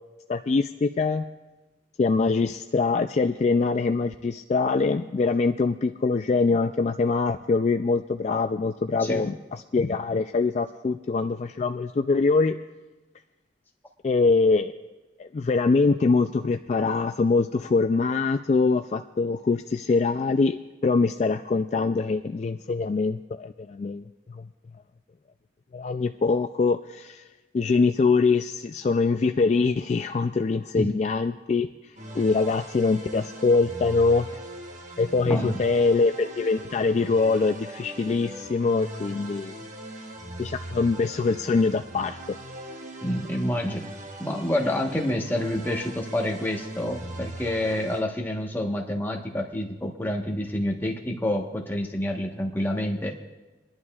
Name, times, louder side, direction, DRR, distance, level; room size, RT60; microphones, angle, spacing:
voice 1, 0.3-1.2 2.0-12.6 14.0-14.7 15.2-24.5 25.7-27.2 27.5-31.7 32.1-34.3 35.0-39.6 40.4-42.2, left 4 dB, 40° left, 7 dB, 0.3 m, -23 dB
sound 1, 32.0-48.0, right 1 dB, 40° right, 1.2 m, -40 dB
voice 2, 35.2-35.6 43.0-43.8 44.2-53.1, left 1 dB, 10° left, 0 dB, 1.1 m, -28 dB
25.0 x 11.0 x 2.4 m, 1.2 s
head